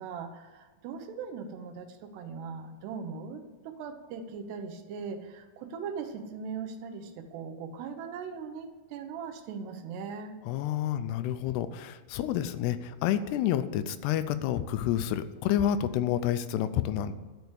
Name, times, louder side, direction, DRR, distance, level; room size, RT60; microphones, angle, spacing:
voice 1, 0.0-10.3, right 5 dB, 85° right, 6 dB, 3.1 m, -39 dB
voice 2, 10.5-17.1, left 11 dB, 85° left, 12 dB, 2.7 m, -29 dB
11.5 x 6.9 x 8.0 m, 1.3 s
omnidirectional pair, 4.7 m